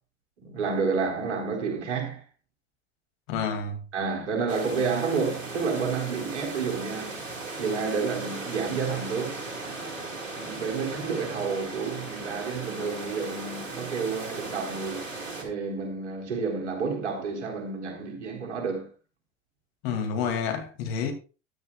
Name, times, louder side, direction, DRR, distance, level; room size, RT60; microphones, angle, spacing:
voice 1, 0.4-2.2 3.9-7.2 7.6-9.4 10.3-15.1 15.4-18.9, right 5 dB, 65° right, 3.7 m, -30 dB
voice 2, 3.3-3.8 19.8-21.1, left 6 dB, 55° left, 2.3 m, -29 dB
sound 1, 4.5-15.4, right 3 dB, 80° right, 2.2 m, -37 dB
13.5 x 10.5 x 2.3 m
figure-of-eight pair, 75°, 38 cm